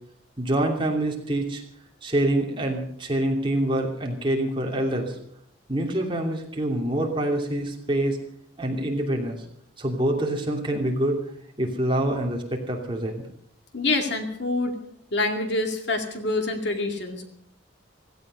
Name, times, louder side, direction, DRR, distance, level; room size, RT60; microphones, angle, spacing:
voice 1, 0.4-1.6 2.0-5.2 5.7-8.2 8.6-9.4 9.8-11.2 11.6-13.2, right 1 dB, 25° right, 1 dB, 2.8 m, -26 dB
voice 2, 13.7-14.8 15.1-17.3, left 2 dB, 60° left, 4 dB, 2.4 m, -26 dB
16.5 x 16.0 x 5.4 m, 0.66 s
head